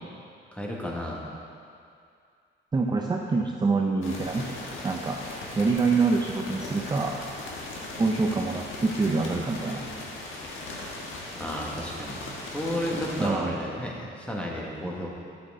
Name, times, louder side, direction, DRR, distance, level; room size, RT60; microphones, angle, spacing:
voice 1, 0.5-1.3 11.3-15.1, equal, 5° left, -3 dB, 1.6 m, -32 dB
voice 2, 2.7-4.5 4.8-5.2 5.6-7.2 8.0-9.8 13.2-13.5, right 4 dB, 20° right, 1 dB, 0.6 m, -25 dB
sound 1, 4.0-13.3, left 2 dB, 80° left, 1.4 m, -38 dB
8.8 x 8.0 x 3.7 m, 2.3 s
cardioid pair, 90°, 20 cm